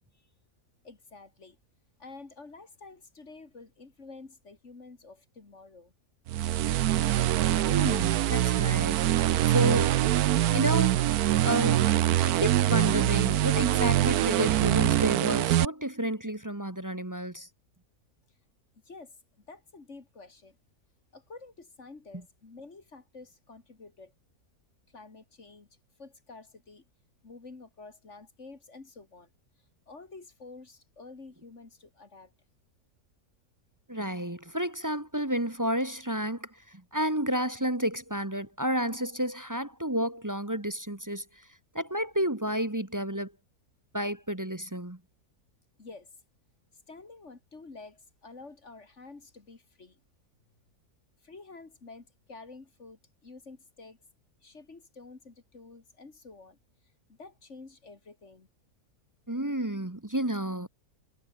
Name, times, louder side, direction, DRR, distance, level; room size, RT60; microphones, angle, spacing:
voice 1, 0.8-1.6 2.0-5.9 18.8-19.2 19.5-20.6 21.1-24.1 24.9-25.7 26.0-26.8 27.2-29.3 29.9-32.3 45.8-46.1 46.9-50.0 51.2-54.0 54.4-56.6 57.1-58.5, left 3 dB, 50° left, 2.8 m, -49 dB
sound 1, 6.3-15.7, right 13 dB, 85° right, 1.2 m, -24 dB
voice 2, 7.6-10.0 10.5-11.0 11.4-11.9 12.2-17.5 33.9-41.2 41.7-43.3 43.9-45.0 59.3-60.7, equal, 15° right, 1.2 m, -31 dB
omnidirectional pair, 1.6 m